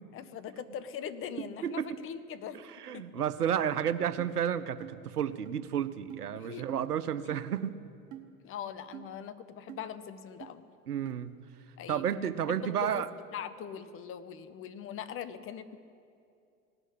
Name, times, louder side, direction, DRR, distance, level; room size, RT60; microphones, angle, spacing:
voice 1, 0.1-2.6 2.9-3.0 3.4-3.5 6.3-6.7 7.3-7.4 8.4-10.6 11.8-13.1 13.3-15.8, left 8 dB, 30° left, 12 dB, 0.8 m, -41 dB
voice 2, 2.8-7.7 10.9-11.3 11.9-13.1, right 9 dB, 85° right, 14 dB, 0.7 m, -31 dB
sound 1, 4.2-4.3 4.8-5.0 5.4-5.5 6.1-6.2 6.7-6.8 7.3-7.4 8.1-8.3 8.9-9.1 9.7-9.8 10.4-10.5 11.0-11.2, right 13 dB, 40° right, 1.2 m, -44 dB
18.0 x 6.4 x 10.0 m, 2.4 s
figure-of-eight pair, 85°, 45 cm